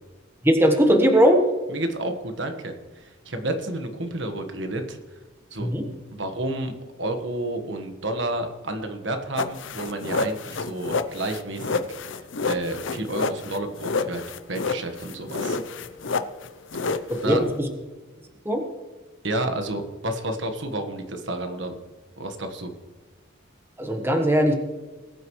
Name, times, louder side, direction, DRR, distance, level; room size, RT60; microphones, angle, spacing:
voice 1, 0.4-1.5 5.6-5.8 17.1-17.5 18.4-18.6 23.8-24.5, equal, 10° right, 3 dB, 1.2 m, -19 dB
voice 2, 1.7-5.0 5.5-5.7 6.1-6.7 7.0-11.8 12.1-14.2 14.5-15.6 17.0-17.4 19.2-21.7 22.2-22.7, right 1 dB, 60° right, 6 dB, 1.4 m, -30 dB
sound 1, 9.4-17.6, left 4 dB, 65° left, 0.7 m, -29 dB
20.5 x 9.1 x 3.2 m, 1.3 s
head